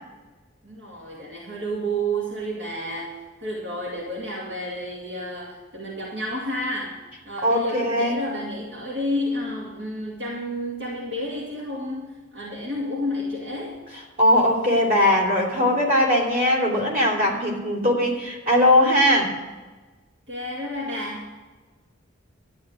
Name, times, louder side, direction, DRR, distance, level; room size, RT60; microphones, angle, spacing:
voice 1, 0.6-3.1 3.4-7.0 7.2-13.8 17.3-17.7 20.3-21.4, equal, 60° right, -4 dB, 2.3 m, -30 dB
voice 2, 7.4-8.2 14.2-19.3, left 1 dB, 45° right, 1 dB, 3.3 m, -20 dB
12.5 x 9.7 x 6.4 m, 1.3 s
head